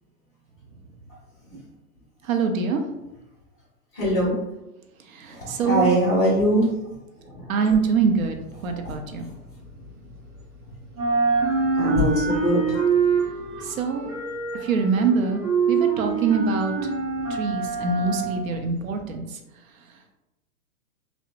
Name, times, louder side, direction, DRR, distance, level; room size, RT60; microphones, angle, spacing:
voice 1, 2.2-2.8 5.1-5.9 7.5-8.4 8.6-9.3 13.6-14.1 14.6-15.4 15.7-16.7 17.3-19.4, right 5 dB, 60° right, 5 dB, 0.5 m, -24 dB
voice 2, 3.9-4.4 5.3-6.7 7.3-7.5 8.8-8.9 11.8-12.7, right 1 dB, 20° left, -10 dB, 0.7 m, -22 dB
sound 1, 7.7-10.6 10.9-19.0, right 4 dB, 80° right, 0.9 m, -26 dB
2.7 x 2.1 x 2.4 m, 0.97 s
hypercardioid pair, 160°, 46 cm